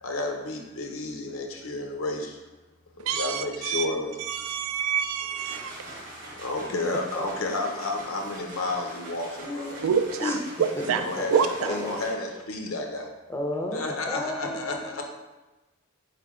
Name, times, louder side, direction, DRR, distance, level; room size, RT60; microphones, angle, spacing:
voice 1, 0.0-2.4 3.0-4.5 6.4-9.8 10.8-13.1 13.7-15.0, left 2 dB, 75° left, 3 dB, 0.7 m, -31 dB
voice 2, 3.1-3.9 4.2-5.7 9.8-10.3 10.6-11.0 11.3-11.7, right 7 dB, 80° right, 8 dB, 0.4 m, -26 dB
sound 1, 5.1-12.5, right 1 dB, 40° right, 0.9 m, -43 dB
voice 3, 6.9-7.2 9.4-9.9 10.2-10.4 11.6-12.0 13.3-13.8 14.1-15.0, left 1 dB, 10° left, 0 dB, 0.5 m, -32 dB
4.2 x 3.3 x 3.6 m, 1.1 s
head